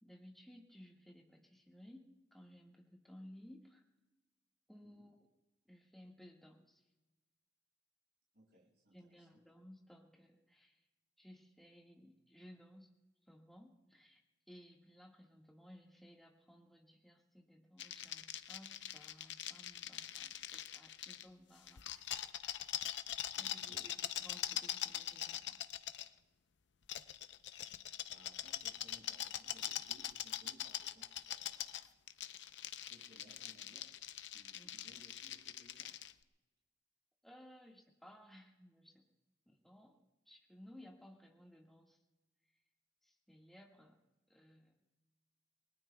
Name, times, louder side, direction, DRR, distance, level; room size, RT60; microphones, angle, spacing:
voice 1, 0.0-3.8 4.7-5.3 5.6-6.8 8.9-10.8 11.2-12.9 13.3-14.2 14.5-22.1 22.4-22.6 23.4-25.6 27.7-27.8 34.5-34.8 37.2-39.0 39.5-42.0 43.0-44.0 44.3-44.8, equal, ahead, -1 dB, 1.6 m, -59 dB
voice 2, 8.3-9.4 23.3-23.9 28.1-31.9 32.8-33.9 34.3-35.9, equal, 60° right, -5 dB, 6.2 m, -64 dB
sound 1, 17.8-21.3 21.7-26.1 26.9-36.1, left 11 dB, 70° left, 0.6 m, -43 dB
28.5 x 20.5 x 2.3 m, 1.1 s
head